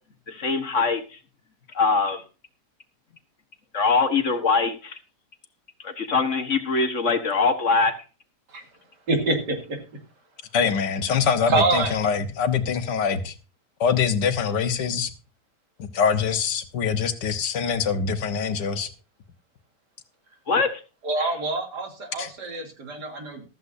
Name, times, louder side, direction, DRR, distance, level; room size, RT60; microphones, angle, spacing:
voice 1, 0.3-1.0 1.7-2.2 3.7-5.0 5.8-7.9 20.5-20.7, left 4 dB, 45° left, 8 dB, 1.5 m, -22 dB
voice 2, 9.1-9.8 11.5-11.9 21.0-23.4, right 3 dB, 75° right, 4 dB, 3.2 m, -25 dB
voice 3, 10.5-13.3 13.8-15.1 15.8-18.9 22.2-22.3, left 6 dB, 75° left, 10 dB, 1.8 m, -24 dB
14.5 x 13.5 x 2.7 m, 0.32 s
omnidirectional pair, 1.9 m